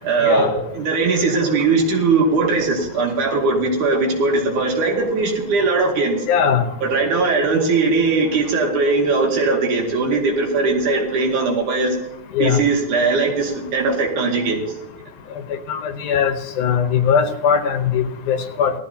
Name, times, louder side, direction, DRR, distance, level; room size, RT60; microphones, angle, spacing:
voice 1, 0.0-6.3 6.8-12.0 12.4-14.6, right 3 dB, 90° right, 0 dB, 3.7 m, -19 dB
voice 2, 6.3-6.6 12.4-12.6 15.7-18.7, left 7 dB, 85° left, 8 dB, 2.6 m, -19 dB
18.5 x 13.5 x 2.8 m, 0.94 s
omnidirectional pair, 3.4 m